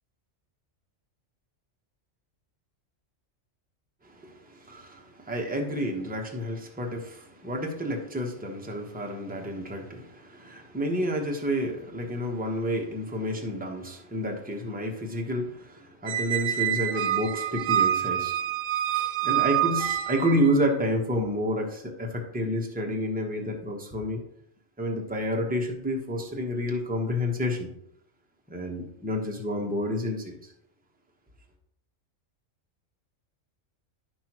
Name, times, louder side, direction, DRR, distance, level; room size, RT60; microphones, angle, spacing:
voice 1, 4.0-18.3 19.2-24.2 24.8-27.7 28.5-30.5, equal, 10° right, 1 dB, 0.9 m, -30 dB
Squeak, 16.1-20.5, right 11 dB, 75° right, 0.4 m, -27 dB
10.5 x 5.9 x 3.0 m, 0.74 s
omnidirectional pair, 1.4 m